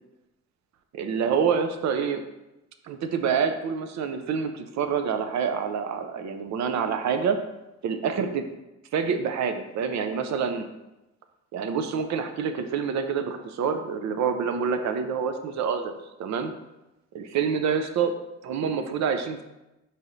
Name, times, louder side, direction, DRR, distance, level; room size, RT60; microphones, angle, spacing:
voice 1, 0.9-2.2 2.8-7.4 7.8-8.4 8.9-10.7 11.5-15.9 16.2-16.5 17.1-18.1 18.4-19.4, right 6 dB, 65° right, 7 dB, 0.6 m, -27 dB
4.7 x 4.1 x 2.6 m, 0.96 s
cardioid pair, 90°, 30 cm